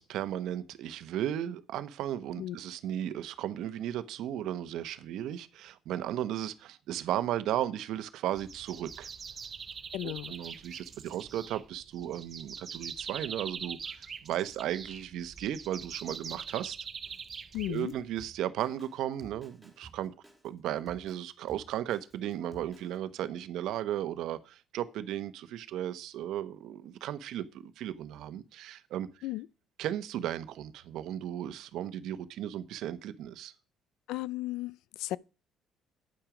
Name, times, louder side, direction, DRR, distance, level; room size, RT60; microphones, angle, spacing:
voice 1, 0.0-9.1 10.0-16.8 17.7-20.1 20.4-29.2 29.8-33.5, right 11 dB, 65° right, 1.0 m, -35 dB
sound 1, 8.4-18.2, right 6 dB, 25° right, 0.8 m, -43 dB
voice 2, 9.9-10.3 17.5-17.9 29.2-29.5 34.1-35.2, left 15 dB, 85° left, 0.5 m, -35 dB
Drum kit, 17.0-23.0, right 2 dB, ahead, 2.9 m, -55 dB
9.9 x 9.1 x 5.0 m
cardioid pair, 165°, 0 cm